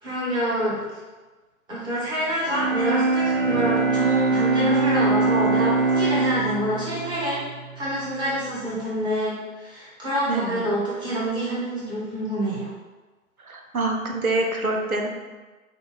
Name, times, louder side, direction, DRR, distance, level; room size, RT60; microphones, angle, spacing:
voice 1, 0.0-0.8 1.7-7.4 7.7-12.7, equal, 10° right, -8 dB, 1.2 m, -27 dB
Bowed string instrument, 2.4-8.5, right 4 dB, 50° right, 0.7 m, -23 dB
voice 2, 10.3-10.7 13.4-15.1, right 2 dB, 90° right, 2 dB, 0.8 m, -26 dB
5.2 x 2.2 x 3.9 m, 1.2 s
figure-of-eight pair, 115°, 42 cm